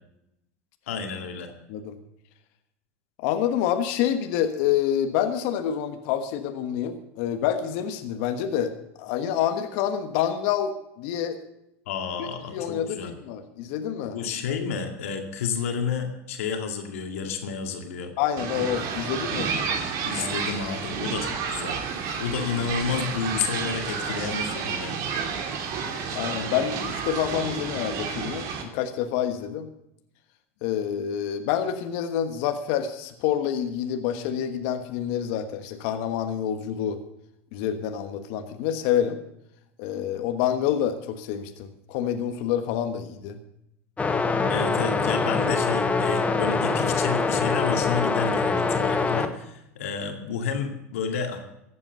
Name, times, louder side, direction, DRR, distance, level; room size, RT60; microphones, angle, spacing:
voice 1, 0.9-1.5 11.9-13.1 14.1-18.1 20.0-21.8 22.2-25.0 44.5-51.4, left 6 dB, 80° left, 4 dB, 2.2 m, -30 dB
voice 2, 3.2-8.7 9.0-11.4 12.5-14.2 18.2-19.8 26.1-29.7 30.6-37.0 37.5-39.2 39.8-43.4, left 9 dB, 65° left, 7 dB, 1.3 m, -27 dB
sound 1, 18.4-28.6, right 6 dB, 55° right, 2.4 m, -30 dB
sound 2, 44.0-49.3, left 4 dB, 20° left, 1.4 m, -24 dB
14.5 x 8.4 x 6.8 m, 0.81 s
hypercardioid pair, 95°, 7 cm